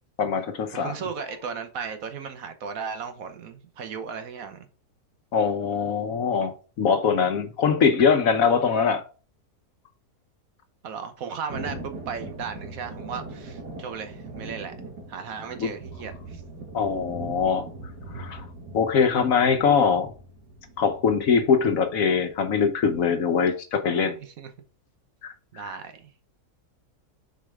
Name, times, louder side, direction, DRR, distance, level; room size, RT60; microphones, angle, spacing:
voice 1, 0.2-0.9 5.3-9.0 15.6-15.7 16.7-17.7 18.1-18.4 18.7-20.1 20.8-24.2 25.2-25.7, left 6 dB, 60° left, 1.2 m, -22 dB
voice 2, 0.7-4.7 10.8-14.7 15.1-16.4 24.2-24.5 25.5-26.1, right 6 dB, 65° right, 1.2 m, -36 dB
Thunder, 11.5-23.0, right 2 dB, 85° right, 2.5 m, -41 dB
6.5 x 4.9 x 3.5 m
omnidirectional pair, 1.7 m